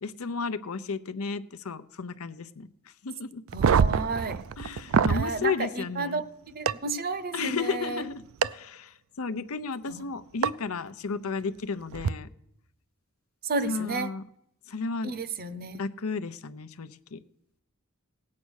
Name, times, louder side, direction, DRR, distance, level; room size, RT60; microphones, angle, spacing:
voice 1, 0.0-2.7 3.0-3.4 4.6-6.2 7.3-8.1 8.5-8.8 9.2-12.3 13.7-14.2 14.7-15.1 15.7-17.2, left 4 dB, 75° left, 13 dB, 0.7 m, -33 dB
voice 2, 3.5-4.4 5.1-6.3 6.5-8.1 9.9-10.0 13.4-14.1 15.0-15.8, right 3 dB, 45° right, 13 dB, 0.8 m, -32 dB
sound 1, 3.5-5.3 6.7-6.8 8.4-8.5 10.4-10.5 11.9-12.1, right 6 dB, 65° right, 0.4 m, -24 dB
17.5 x 8.6 x 6.4 m, 0.80 s
head